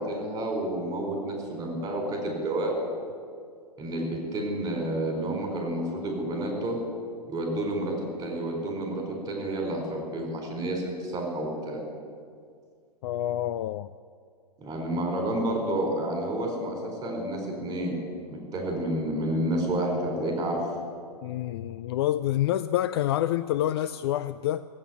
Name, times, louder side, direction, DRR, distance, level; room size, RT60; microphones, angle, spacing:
voice 1, 0.0-2.8 3.8-6.8 7.3-11.8 14.6-20.6, right 1 dB, 15° right, 4.5 m, -30 dB
voice 2, 13.0-13.9 21.2-24.7, left 13 dB, 40° left, 0.4 m, -27 dB
17.5 x 8.6 x 9.3 m
figure-of-eight pair, 115°, 21 cm